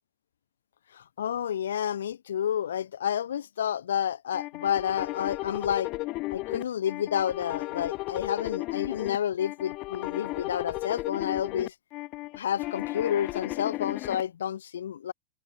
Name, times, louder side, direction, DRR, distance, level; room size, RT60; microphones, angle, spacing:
voice 1, 0.9-5.9 6.3-11.7 12.4-15.1, left 9 dB, 65° left, 0.4 m, -30 dB
sound 1, 4.3-14.2, left 21 dB, 40° left, 0.8 m, -34 dB
figure-of-eight pair, 90°, 0 cm